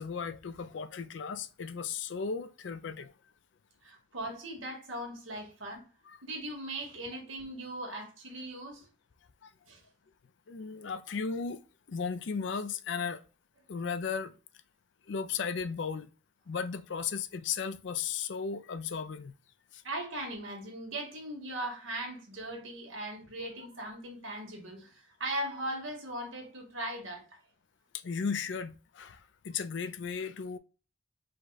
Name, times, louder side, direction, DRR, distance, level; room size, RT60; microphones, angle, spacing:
voice 1, 0.0-3.1 6.1-6.2 9.4-9.5 10.5-11.6 11.9-13.2 13.7-14.3 15.1-16.1 16.5-19.3 19.7-19.8 27.9-30.6, left 6 dB, 65° left, 0.4 m, -35 dB
voice 2, 3.8-5.8 6.2-8.9 9.7-9.8 19.8-27.4, right 1 dB, 85° right, 1.6 m, -39 dB
5.1 x 2.2 x 4.0 m
head